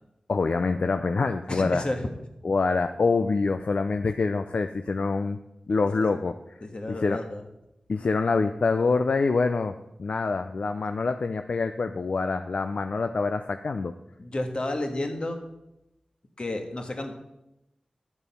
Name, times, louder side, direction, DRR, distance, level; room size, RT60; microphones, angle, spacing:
voice 1, 0.3-1.8 2.4-5.4 5.7-6.4 6.9-7.2 7.9-9.7 10.0-13.9, left 4 dB, 65° left, 8 dB, 0.5 m, -25 dB
voice 2, 1.5-2.1 6.0-6.1 6.6-7.4 14.2-15.4 16.4-17.1, left 1 dB, 45° left, 4 dB, 1.6 m, -31 dB
10.5 x 7.0 x 5.6 m, 0.88 s
wide cardioid pair, 70°, 2 cm